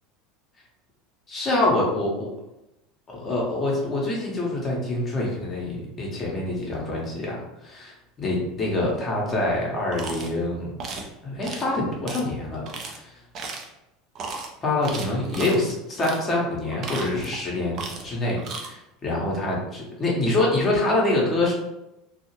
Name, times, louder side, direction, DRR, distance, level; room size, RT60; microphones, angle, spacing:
voice 1, 1.3-2.3 3.1-7.4 7.6-10.7 11.2-12.7 12.9-13.1 14.6-21.5, left 2 dB, 30° left, -3 dB, 1.0 m, -25 dB
sound 1, 9.9-10.3 10.8-11.1 11.4-11.7 12.1-12.2 12.7-13.0 13.3-13.7 14.2-14.5 14.8-15.6 16.0-16.2 16.7-17.4 17.7-18.1 18.4-18.7, right 4 dB, 45° right, 0.5 m, -35 dB
2.7 x 2.4 x 2.9 m, 0.91 s
figure-of-eight pair, 75°, 0 cm